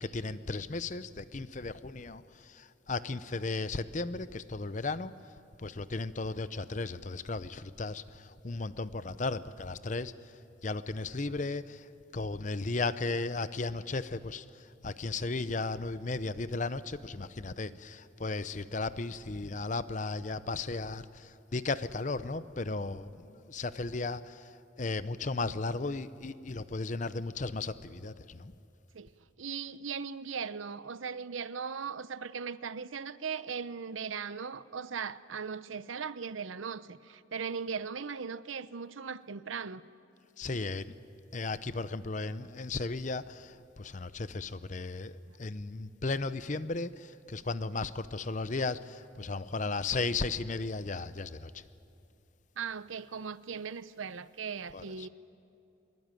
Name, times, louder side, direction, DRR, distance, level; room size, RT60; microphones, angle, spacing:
voice 1, 0.0-5.1 5.6-10.1 10.6-11.9 12.1-14.4 14.8-24.5 24.8-28.5 40.4-40.9 41.3-51.6 54.7-55.1, left 3 dB, 40° left, 0.7 m, -35 dB
voice 2, 29.4-39.8 45.3-45.4 47.7-47.8 52.6-55.1, right 6 dB, 85° right, 0.7 m, -38 dB
23.0 x 22.0 x 9.1 m
head